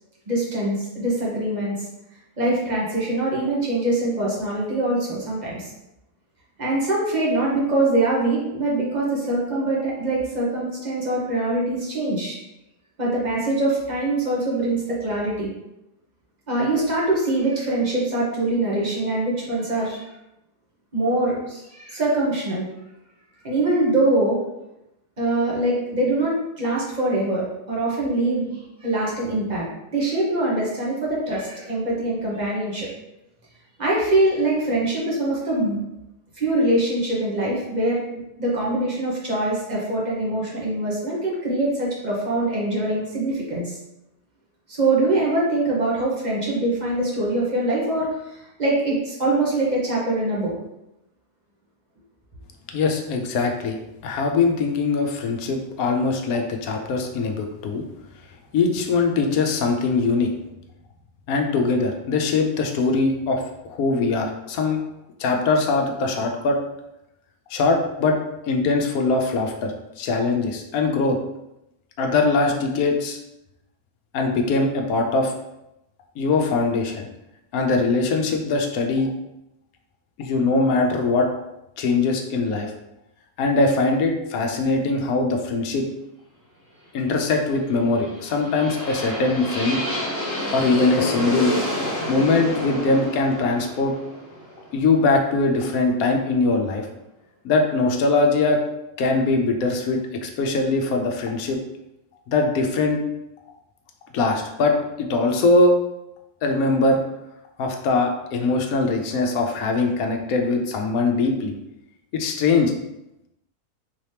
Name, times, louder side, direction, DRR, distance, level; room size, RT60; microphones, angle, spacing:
voice 1, 0.3-1.9 2.4-5.7 6.6-12.4 13.0-15.5 16.5-20.0 20.9-22.6 23.4-24.4 25.2-28.5 28.8-29.6 29.9-32.9 33.8-35.8 36.4-38.0 38.4-43.8 44.7-50.5, right 2 dB, 30° right, -5 dB, 1.1 m, -23 dB
voice 2, 52.7-53.8 54.0-57.8 58.5-60.3 61.3-64.8 65.2-66.6 67.5-68.2 68.5-71.2 72.0-73.2 74.1-75.3 76.2-77.1 77.5-79.1 80.2-81.3 81.8-82.7 83.4-85.8 86.9-89.8 90.5-91.5 92.1-93.9 94.7-96.9 97.4-98.6 99.0-101.6 102.3-103.0 104.1-105.8 106.4-107.0 107.6-111.5 112.1-112.7, left 3 dB, 70° left, 3 dB, 1.0 m, -21 dB
sound 1, 87.8-95.8, left 1 dB, 15° left, 0.6 m, -29 dB
4.0 x 2.9 x 3.2 m, 0.89 s
omnidirectional pair, 1.7 m